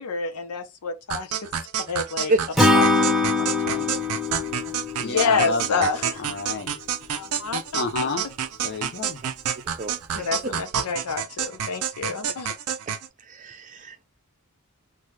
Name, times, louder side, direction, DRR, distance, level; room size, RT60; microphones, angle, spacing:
voice 1, 0.0-1.5 1.9-2.3 2.7-2.9 5.0-6.4 7.1-8.1 10.2-12.5, left 5 dB, 90° left, 0.7 m, -28 dB
sound 1, 1.1-13.1, right 8 dB, 90° right, 0.5 m, -29 dB
Acoustic guitar / Strum, 2.6-5.8, left 2 dB, ahead, 0.8 m, -22 dB
voice 2, 3.4-3.9 5.0-5.9 6.2-6.7 7.7-8.2 8.6-9.2, left 4 dB, 50° left, 0.6 m, -30 dB
voice 3, 9.8-10.3 13.3-14.0, right 2 dB, 35° right, 0.5 m, -28 dB
2.7 x 2.3 x 3.2 m
head